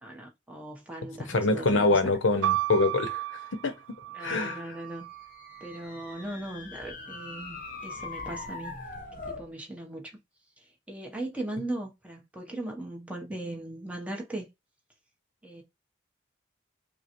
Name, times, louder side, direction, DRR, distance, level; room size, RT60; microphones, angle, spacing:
voice 1, 0.0-2.0 4.1-5.1 5.6-8.7 9.3-10.0 10.9-14.5 15.4-15.6, right 1 dB, 5° right, 0.9 m, -38 dB
voice 2, 1.2-3.2 3.5-4.7, left 3 dB, 85° left, 0.8 m, -26 dB
sound 1, 2.4-6.3 7.1-7.8, right 13 dB, 75° right, 0.3 m, -34 dB
sound 2, 5.1-9.5, left 3 dB, 45° left, 0.8 m, -41 dB
5.2 x 2.2 x 3.0 m
head